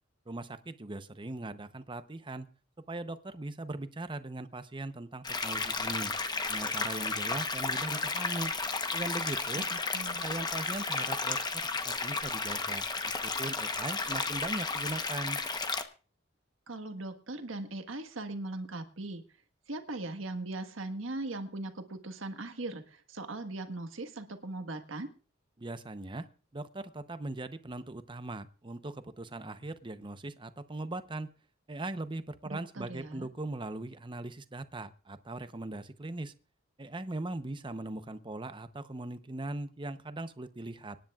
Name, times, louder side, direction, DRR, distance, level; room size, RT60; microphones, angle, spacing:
voice 1, 0.3-2.5 2.9-6.1 6.5-8.5 8.9-9.7 10.1-15.4 25.6-26.3 26.5-31.3 31.7-36.3 36.8-41.0, right 2 dB, 25° right, 11 dB, 0.8 m, -39 dB
sound 1, 5.2-15.8, left 4 dB, 20° left, 0.9 m, -33 dB
voice 2, 9.5-10.2 16.7-19.2 19.7-25.1 32.4-33.3, right 2 dB, 85° right, 7 dB, 1.5 m, -39 dB
25.5 x 10.5 x 2.4 m, 0.37 s
head